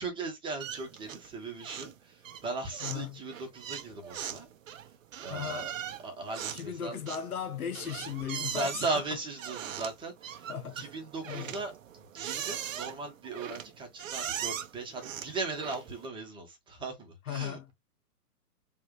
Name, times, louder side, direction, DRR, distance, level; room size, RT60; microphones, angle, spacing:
voice 1, 0.0-4.5 5.2-5.7 6.0-7.0 8.5-10.4 10.8-11.7 12.1-17.7, right 3 dB, 10° right, 1.3 m, -38 dB
sound 1, 0.6-1.3 1.6-2.0 2.2-16.1, right 9 dB, 55° right, 0.8 m, -40 dB
voice 2, 2.8-3.2 5.3-5.7 6.5-9.0 10.5-10.9 11.2-11.6 17.3-17.7, left 8 dB, 65° left, 1.1 m, -37 dB
4.6 x 2.6 x 3.2 m
hypercardioid pair, 130°, 47 cm